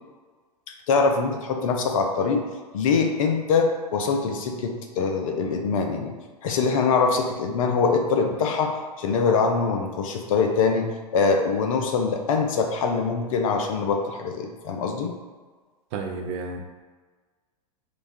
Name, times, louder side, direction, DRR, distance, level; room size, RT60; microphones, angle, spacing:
voice 1, 0.9-2.5 2.7-6.1 6.4-15.1, left 4 dB, 55° left, 4 dB, 0.5 m, -23 dB
voice 2, 15.9-16.6, right 4 dB, 45° right, 3 dB, 0.5 m, -31 dB
4.7 x 2.2 x 2.6 m, 1.4 s
figure-of-eight pair, 95°, 21 cm